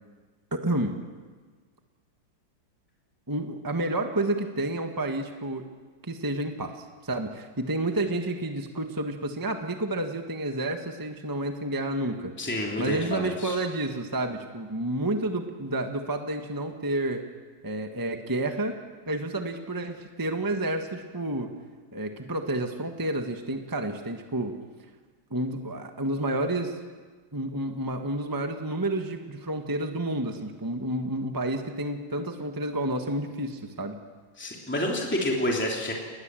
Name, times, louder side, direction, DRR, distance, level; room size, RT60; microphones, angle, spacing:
voice 1, 0.5-1.0 3.3-5.6 6.0-12.3 12.8-17.2 17.6-18.8 19.1-21.5 21.9-24.5 25.3-26.8 27.3-34.0, right 1 dB, 10° right, 5 dB, 1.3 m, -30 dB
voice 2, 12.4-13.5 34.4-35.9, left 1 dB, 5° left, -1 dB, 3.0 m, -28 dB
29.5 x 20.5 x 7.7 m, 1.4 s
omnidirectional pair, 2.1 m